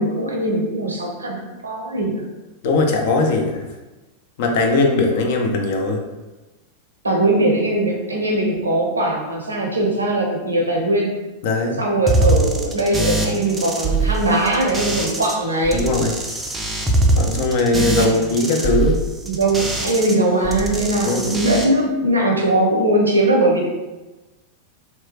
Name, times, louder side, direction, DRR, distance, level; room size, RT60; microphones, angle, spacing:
voice 1, 0.0-2.2 7.0-11.2 11.8-15.9 18.0-18.1 19.3-23.7, right 1 dB, 75° right, 0 dB, 0.5 m, -20 dB
voice 2, 2.6-3.6 4.4-6.0 11.4-11.8 15.7-16.1 17.2-19.0 21.0-21.3, left 2 dB, 50° left, 2 dB, 0.5 m, -19 dB
sound 1, 12.1-15.3 15.6-20.1 20.4-21.6, right 2 dB, 10° right, 0.4 m, -22 dB
2.9 x 2.3 x 2.7 m, 1.1 s
figure-of-eight pair, 90°, 0 cm